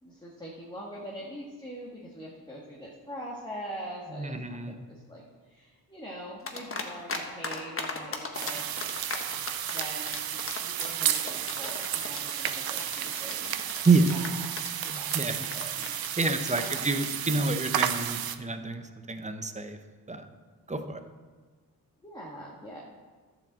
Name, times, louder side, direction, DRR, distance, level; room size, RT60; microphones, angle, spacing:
voice 1, 0.0-8.7 9.6-15.9 16.5-17.0 22.0-22.8, equal, 10° left, -4 dB, 1.8 m, -43 dB
voice 2, 4.1-4.7 13.8-14.2 14.9-15.4 16.2-19.8 20.1-20.3 20.7-21.0, right 3 dB, 20° right, 7 dB, 0.9 m, -28 dB
sound 1, 6.5-7.2 7.4-16.9, left 3 dB, 35° left, 1.3 m, -36 dB
sound 2, 8.3-18.4, right 10 dB, 75° right, 0.7 m, -32 dB
11.5 x 5.1 x 7.4 m, 1.4 s
cardioid pair, 90°, 36 cm